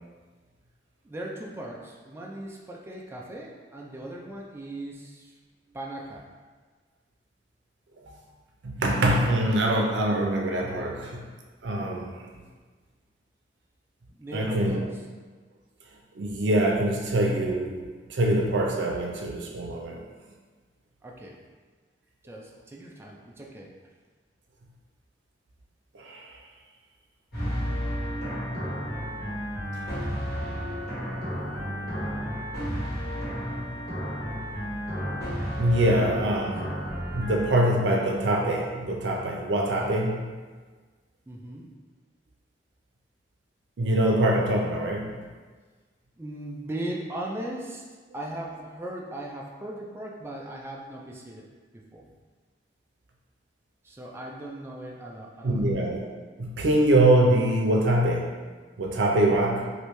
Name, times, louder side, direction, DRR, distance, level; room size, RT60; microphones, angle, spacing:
voice 1, 1.0-5.3 5.7-6.3 14.1-14.9 21.0-21.4 22.2-23.7 41.3-41.7 46.2-47.8 48.1-51.5 51.7-52.1 53.8-55.7, right 1 dB, 15° right, -2 dB, 0.3 m, -38 dB
voice 2, 8.6-11.2 11.6-12.3 14.3-14.8 16.1-17.8 18.1-20.0 25.9-26.4 29.7-29.8 35.6-36.7 37.1-40.3 43.8-45.2 55.4-56.0 56.4-58.4 58.8-59.7, right 1 dB, 85° right, 0 dB, 0.5 m, -24 dB
sound 1, 27.3-37.5, equal, 60° left, 1.4 m, -32 dB
3.1 x 2.6 x 3.0 m, 1.4 s
head